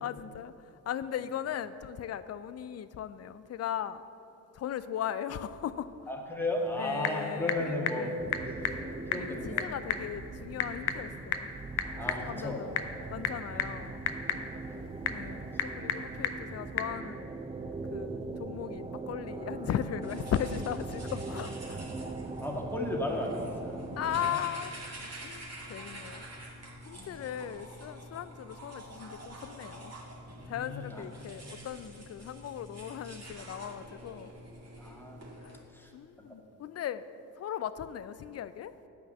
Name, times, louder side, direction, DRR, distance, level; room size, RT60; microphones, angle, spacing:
voice 1, 0.0-0.5 0.9-4.0 4.5-5.9 6.8-8.2 9.1-11.5 12.2-12.7 13.1-14.0 15.1-17.4 17.9-21.8 24.0-24.7 25.0-26.2 26.9-29.9 30.5-34.3 35.4-35.6 35.9-37.1 37.4-38.7, left 9 dB, 35° left, 14 dB, 0.5 m, -37 dB
voice 2, 6.1-8.1 8.4-8.5 9.1-9.7 12.0-12.6 13.5-13.6 14.4-14.8 22.4-24.5 26.9-27.1 30.4-31.0 34.8-35.2 35.7-35.9 36.3-36.5, left 1 dB, 5° left, 0 dB, 1.9 m, -35 dB
Typing / Telephone, 6.5-17.0, left 8 dB, 75° left, 0.7 m, -36 dB
sound 1, 8.2-24.3, right 3 dB, 15° right, 0.6 m, -41 dB
sound 2, 20.0-35.6, right 1 dB, 30° right, 2.4 m, -47 dB
8.7 x 5.7 x 7.4 m, 2.9 s
hypercardioid pair, 45°, 47 cm